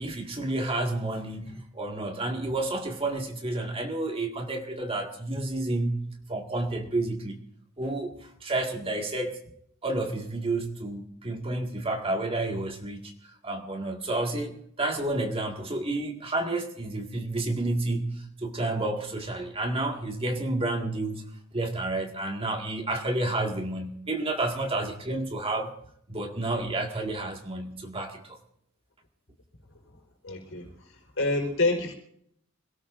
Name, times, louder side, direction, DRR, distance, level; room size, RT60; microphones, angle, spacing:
voice 1, 0.0-6.0 6.3-7.4 7.8-9.4 9.8-13.1 13.4-21.2 21.5-25.8 26.1-28.4, right 2 dB, 30° right, 1.9 m, -30 dB
voice 2, 30.2-30.7 31.2-31.9, left 2 dB, 70° left, 4.6 m, -26 dB
26.5 x 17.5 x 2.6 m
head